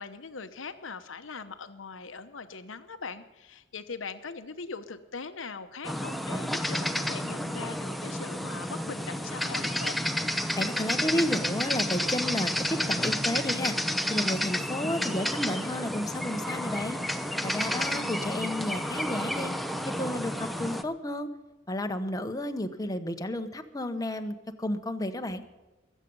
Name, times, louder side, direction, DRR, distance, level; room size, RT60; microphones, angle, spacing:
voice 1, 0.0-10.0 17.6-18.1, left 4 dB, 85° left, 10 dB, 1.0 m, -41 dB
sound 1, 5.8-20.8, equal, ahead, 0.7 m, -31 dB
voice 2, 10.6-13.8 14.1-17.0 17.4-19.5 20.0-21.3 21.7-25.4, left 1 dB, 20° left, 7 dB, 1.0 m, -32 dB
22.0 x 8.3 x 5.4 m, 1.1 s
head